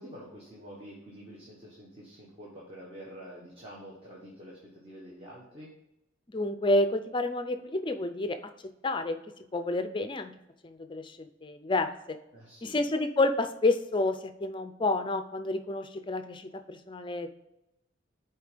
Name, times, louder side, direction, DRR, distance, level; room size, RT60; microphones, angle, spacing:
voice 1, 0.0-5.7 12.3-12.8, equal, 30° right, -5 dB, 1.3 m, -47 dB
voice 2, 6.3-8.4 8.8-9.2 9.5-10.3 10.6-12.2 12.6-17.3, left 2 dB, 25° left, 9 dB, 0.4 m, -29 dB
6.8 x 4.5 x 5.0 m, 0.90 s
head